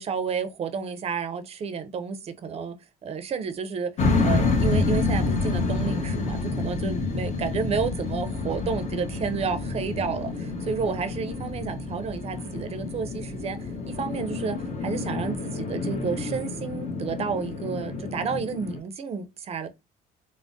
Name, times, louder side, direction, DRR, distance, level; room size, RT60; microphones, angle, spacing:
voice 1, 0.0-2.7 3.0-3.9 4.2-13.6 13.9-19.7, right 5 dB, 40° right, 0.5 m, -31 dB
sound 1, 4.0-18.8, left 3 dB, 45° left, 0.8 m, -28 dB
3.5 x 2.0 x 2.5 m
cardioid pair, 110°, 17 cm